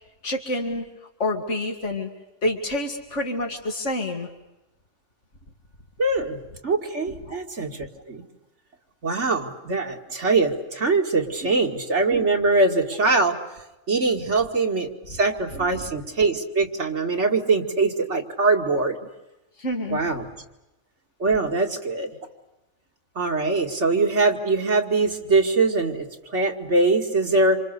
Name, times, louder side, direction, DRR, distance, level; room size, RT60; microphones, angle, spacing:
voice 1, 0.2-0.8 1.2-2.1 2.4-4.3 7.3-7.4 11.4-11.5 19.6-20.0, left 1 dB, 80° left, 3 dB, 2.8 m, -27 dB
voice 2, 6.0-8.2 9.0-13.4 13.9-19.0 19.9-20.3 21.2-22.2 23.2-27.6, right 3 dB, 75° right, 3 dB, 2.7 m, -22 dB
27.5 x 27.0 x 6.8 m, 0.97 s
omnidirectional pair, 1.2 m